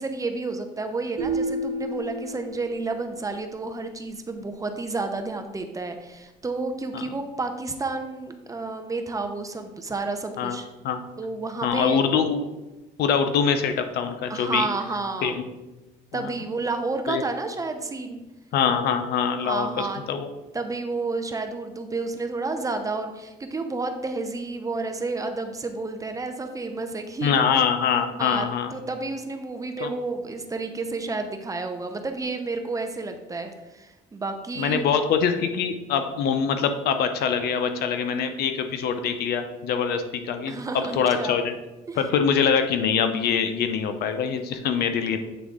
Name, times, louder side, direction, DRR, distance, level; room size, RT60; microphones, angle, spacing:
voice 1, 0.0-10.7 11.2-12.0 14.3-15.4 16.1-18.2 19.4-20.0 20.5-27.4 28.2-34.9 40.5-41.3 41.9-42.0, right 3 dB, 20° right, 6 dB, 0.6 m, -31 dB
sound 1, 1.2-3.3, right 2 dB, 65° right, 1.2 m, -31 dB
voice 2, 11.6-12.4 13.0-14.7 15.2-15.4 16.1-16.3 17.1-17.2 18.5-19.7 20.1-20.3 27.2-28.7 29.8-29.9 34.6-41.5 41.9-45.2, left 7 dB, 70° left, 8 dB, 0.7 m, -24 dB
8.1 x 3.6 x 3.6 m, 1.0 s
cardioid pair, 110°, 17 cm